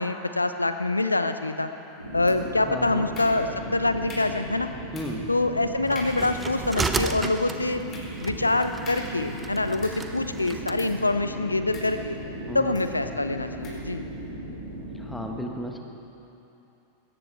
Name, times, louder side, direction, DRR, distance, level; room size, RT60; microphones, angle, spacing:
voice 1, 0.0-1.7 2.1-4.7 5.3-7.8 8.2-12.2 12.5-14.1, left 2 dB, 80° left, 9 dB, 0.8 m, -25 dB
sound 1, 2.0-15.3, right 1 dB, 85° right, 3.6 m, -37 dB
sound 2, 2.3-2.7 3.1-3.7 4.1-4.5 4.9-5.3 5.6-5.7 5.9-6.4 6.8-10.2 10.8-11.1 11.7-12.3 12.7-13.0 13.6-13.9, left 2 dB, 30° left, 3.9 m, -44 dB
voice 2, 2.7-3.1 4.9-5.3 12.5-12.8 14.9-15.8, left 1 dB, 5° left, 2 dB, 1.4 m, -34 dB
sound 3, 5.9-10.8, right 4 dB, 15° right, 0.7 m, -33 dB
21.0 x 17.5 x 3.5 m, 2.9 s
figure-of-eight pair, 90°, 0 cm